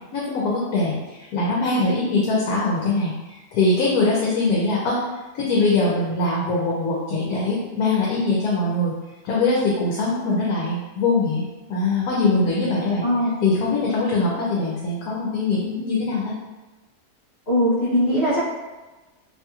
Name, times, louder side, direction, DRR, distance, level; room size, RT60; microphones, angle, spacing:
voice 1, 0.1-5.0 5.3-8.9 9.2-11.4 11.7-13.0 13.4-16.3, left 3 dB, 75° left, -5 dB, 1.1 m, -22 dB
voice 2, 13.0-13.3 17.5-18.5, equal, 45° left, -9 dB, 1.0 m, -20 dB
2.9 x 2.8 x 2.3 m, 1.2 s
omnidirectional pair, 1.7 m